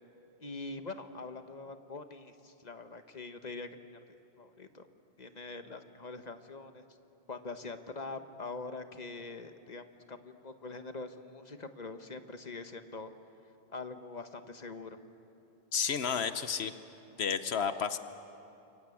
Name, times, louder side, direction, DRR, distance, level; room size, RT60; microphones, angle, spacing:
voice 1, 0.4-4.0 4.4-4.9 5.2-6.8 7.3-13.1 13.7-15.0, left 3 dB, 45° left, 8 dB, 1.3 m, -44 dB
voice 2, 15.7-16.7 17.2-18.0, left 7 dB, 85° left, 11 dB, 1.2 m, -31 dB
29.5 x 23.5 x 8.5 m, 2.8 s
omnidirectional pair, 1.0 m